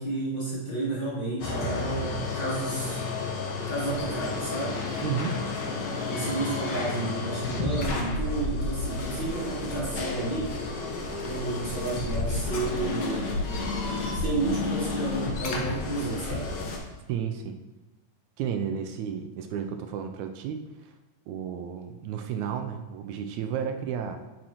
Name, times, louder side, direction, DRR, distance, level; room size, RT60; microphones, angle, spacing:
voice 1, 0.0-3.0 3.7-4.8 6.0-10.6 11.2-13.5 14.1-16.5, right 2 dB, 20° left, -10 dB, 2.7 m, -31 dB
sound 1, 1.4-16.8, left 3 dB, 65° left, 1.1 m, -31 dB
voice 2, 5.0-5.4 17.1-17.6 18.4-20.9 21.3-24.2, right 7 dB, 85° right, 6 dB, 1.9 m, -32 dB
10.0 x 6.2 x 2.9 m, 1.1 s
omnidirectional pair, 3.4 m